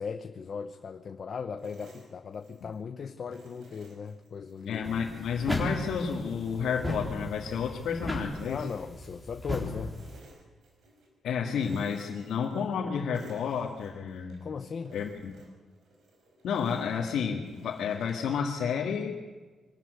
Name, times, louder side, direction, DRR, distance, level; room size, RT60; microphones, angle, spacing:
voice 1, 0.0-4.9 8.5-10.0 14.4-14.9, left 6 dB, 50° left, 8 dB, 0.8 m, -38 dB
sound 1, 1.6-2.9 3.3-4.8 5.2-7.9 8.3-9.5 9.8-11.1 11.5-12.9 13.1-14.4 14.8-18.3, right 1 dB, 80° right, 5.4 m, -56 dB
voice 2, 4.7-8.7 11.2-14.5 14.9-15.3 16.4-19.2, left 6 dB, 80° left, -2 dB, 2.0 m, -31 dB
sound 2, 4.8-10.2, left 1 dB, ahead, 3.9 m, -36 dB
23.5 x 13.0 x 9.5 m, 1.3 s
cardioid pair, 115°, 0 cm